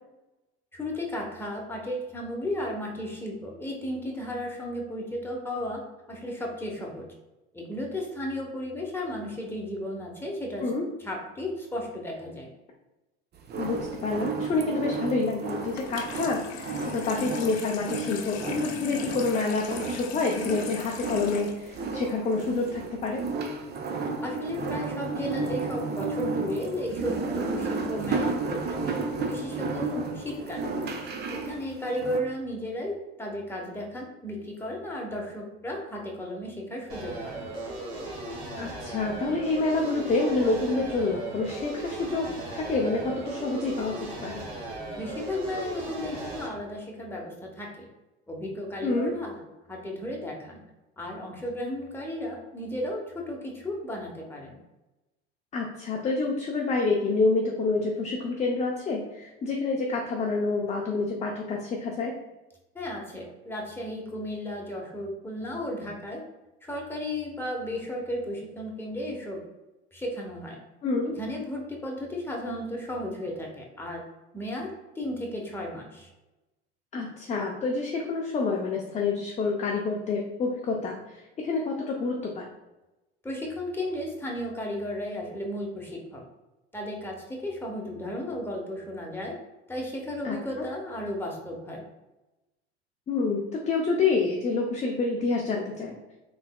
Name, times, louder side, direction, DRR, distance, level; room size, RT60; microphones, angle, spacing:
voice 1, 0.7-5.8 6.1-7.1 7.5-10.7 11.0-12.5 24.2-28.9 29.3-30.7 31.3-37.4 45.0-47.8 48.3-49.4 49.7-50.6 51.0-54.6 62.7-66.2 66.7-69.4 69.9-70.6 71.2-74.0 74.3-76.1 83.2-86.2 86.7-89.3 89.7-91.8, left 1 dB, 5° left, -1 dB, 0.9 m, -34 dB
sound 1, 13.4-32.2, right 3 dB, 35° right, 0.5 m, -33 dB
voice 2, 13.6-23.2 38.6-44.4 48.8-49.1 55.5-62.1 70.8-71.2 76.9-81.0 81.4-82.4 90.2-90.7 93.1-96.0, left 3 dB, 25° left, 0 dB, 0.5 m, -28 dB
Water tap faucet / Sink (filling or washing), 15.7-22.7, left 7 dB, 85° left, 0.5 m, -39 dB
sound 2, 36.9-46.5, right 2 dB, 80° right, 1.1 m, -37 dB
3.4 x 3.2 x 2.2 m, 1.0 s
hypercardioid pair, 70°, 31 cm